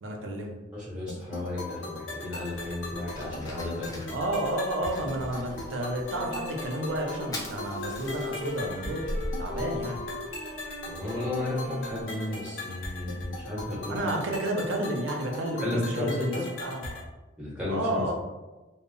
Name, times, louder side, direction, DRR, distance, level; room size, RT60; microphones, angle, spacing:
voice 1, 0.0-0.5 4.1-10.0 13.9-17.0 17.7-18.1, right 1 dB, 85° right, 1 dB, 0.5 m, -31 dB
voice 2, 0.7-4.1 10.8-14.1 15.6-16.4 17.4-18.0, left 1 dB, 5° right, -7 dB, 0.7 m, -33 dB
sound 1, 1.1-17.1, left 2 dB, 75° left, 0.6 m, -40 dB
Fire, 2.3-12.0, equal, 20° left, 0.3 m, -42 dB
Wind instrument woodwind instrument, 6.1-12.8, left 2 dB, 45° left, 0.7 m, -40 dB
2.0 x 2.0 x 3.6 m, 1.1 s
head